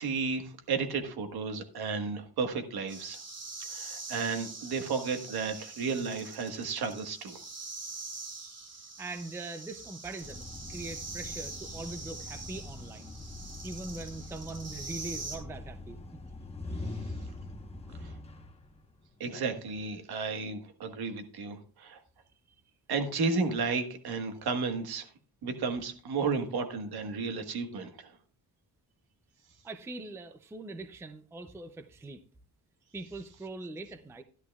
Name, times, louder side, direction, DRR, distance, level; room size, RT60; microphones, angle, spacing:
voice 1, 0.0-3.2 3.7-7.4 19.2-22.0 22.9-25.1 25.4-28.1, right 4 dB, 75° right, 6 dB, 1.5 m, -33 dB
sound 1, 2.9-15.4, right 3 dB, 40° right, 2.3 m, -44 dB
voice 2, 9.0-13.2 13.6-16.0 29.6-32.2 32.9-34.2, right 2 dB, 5° right, 9 dB, 0.4 m, -42 dB
sound 2, 10.2-19.3, left 2 dB, 15° left, 1.0 m, -43 dB
13.0 x 11.5 x 2.3 m, 0.41 s
wide cardioid pair, 180°, 38 cm